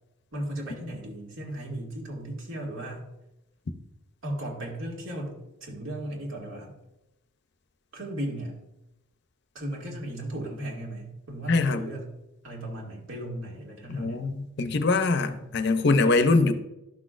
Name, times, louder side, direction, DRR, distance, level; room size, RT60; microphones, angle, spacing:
voice 1, 0.3-3.1 4.2-6.8 7.9-8.6 9.5-12.1 12.4-14.3 15.4-15.5, right 1 dB, 70° right, -2 dB, 2.1 m, -36 dB
voice 2, 11.5-11.8 13.9-16.5, left 3 dB, 50° left, 9 dB, 0.6 m, -23 dB
12.0 x 6.0 x 2.5 m, 0.92 s
head